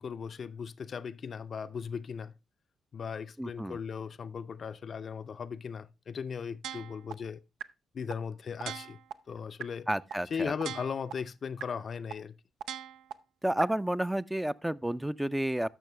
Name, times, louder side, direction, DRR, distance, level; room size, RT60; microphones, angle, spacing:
voice 1, 0.0-2.3 2.9-7.4 7.9-9.0 9.3-9.9 10.3-12.3, left 6 dB, 50° left, 0.5 m, -37 dB
voice 2, 3.4-3.8 9.9-10.5 13.4-15.7, right 1 dB, 10° right, 0.4 m, -31 dB
sound 1, 6.6-7.1 7.6-7.7 8.1-8.2 8.6-9.1 9.6-9.7 10.1-10.2 10.6-11.1 11.6-11.7 12.1-12.2 12.6-13.1 13.6-13.7, right 9 dB, 75° right, 0.4 m, -38 dB
12.0 x 6.0 x 3.3 m
hypercardioid pair, 45°, 0 cm